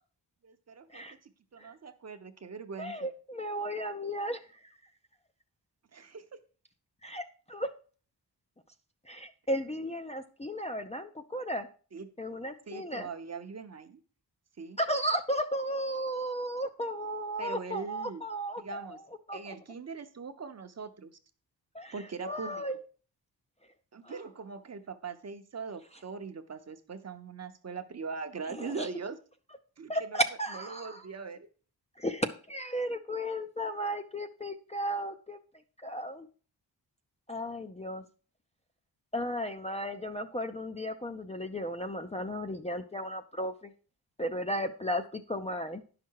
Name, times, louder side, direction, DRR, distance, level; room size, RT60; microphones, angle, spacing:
voice 1, 0.4-3.1 5.9-6.2 11.9-12.1 12.7-14.0 14.6-14.8 17.4-18.2 18.6-19.0 19.3-21.2 21.9-22.6 23.9-29.2 29.8-30.2 30.5-31.5, right 5 dB, 40° right, 9 dB, 0.7 m, -41 dB
voice 2, 2.8-4.4 7.0-7.7 9.1-11.7 12.2-13.1 14.8-19.0 19.3-19.6 21.7-21.9 22.2-22.8 24.0-24.2 28.5-28.9 29.9-31.0 32.0-35.4 35.8-36.3 37.3-38.0 39.1-43.7 44.2-45.8, equal, 15° left, 4 dB, 0.4 m, -34 dB
10.5 x 5.9 x 4.6 m, 0.39 s
wide cardioid pair, 175°, 41 cm